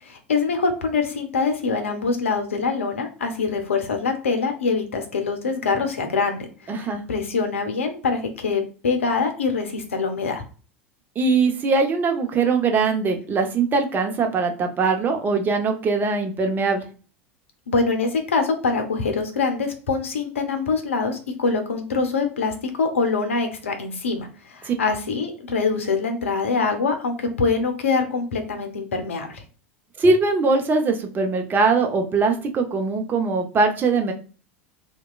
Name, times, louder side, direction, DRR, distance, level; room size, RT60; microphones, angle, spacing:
voice 1, 0.0-6.5 6.7-10.4 17.7-29.4, left 4 dB, 80° left, 5 dB, 0.6 m, -24 dB
voice 2, 6.7-7.0 11.2-16.8 24.6-24.7 30.0-34.1, right 4 dB, 30° right, 4 dB, 0.6 m, -21 dB
2.8 x 2.2 x 2.3 m, 0.38 s
figure-of-eight pair, 85°, 7 cm